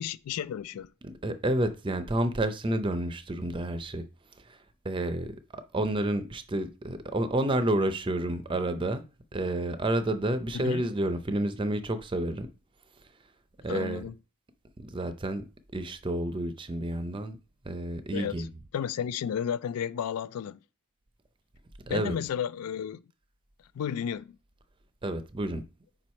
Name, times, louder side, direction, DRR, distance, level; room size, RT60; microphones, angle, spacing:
voice 1, 0.0-0.9 10.5-10.8 13.7-14.1 18.1-18.5 18.7-20.6 21.9-23.0 23.7-24.4, left 8 dB, 85° left, 0.3 m, -32 dB
voice 2, 1.0-4.1 4.4-4.6 4.8-5.4 5.7-9.0 9.3-12.5 13.6-14.0 14.8-15.5 15.7-17.4 17.6-18.5 21.9-22.1 25.0-25.6, right 1 dB, 20° right, 0.5 m, -30 dB
5.0 x 4.6 x 4.2 m
head